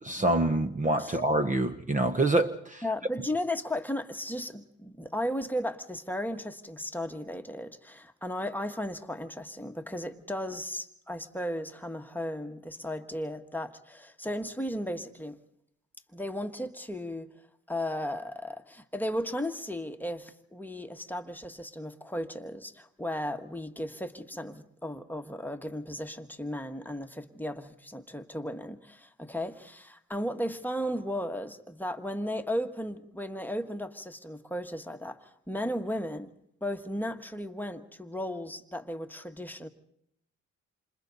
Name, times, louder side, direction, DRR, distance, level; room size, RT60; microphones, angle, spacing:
voice 1, 0.0-2.8, right 2 dB, 25° right, 1.1 m, -26 dB
voice 2, 2.8-15.4 16.1-17.3 17.7-36.3 36.6-39.7, equal, 5° left, 1.6 m, -35 dB
28.5 x 26.5 x 4.1 m
cardioid pair, 90°, 30 cm